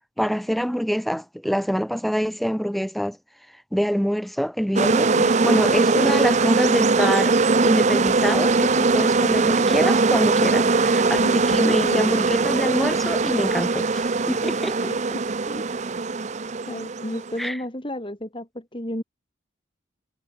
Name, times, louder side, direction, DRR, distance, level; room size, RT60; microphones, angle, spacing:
voice 1, 0.2-3.2 3.7-14.9 17.4-17.6, equal, ahead, 6.3 m, -25 dB
sound 1, 4.8-17.4, right 3 dB, 35° right, 0.6 m, -21 dB
voice 2, 5.2-5.6 11.2-11.4 11.6-12.2 14.8-15.7 16.7-19.0, equal, 25° left, 3.5 m, -32 dB
head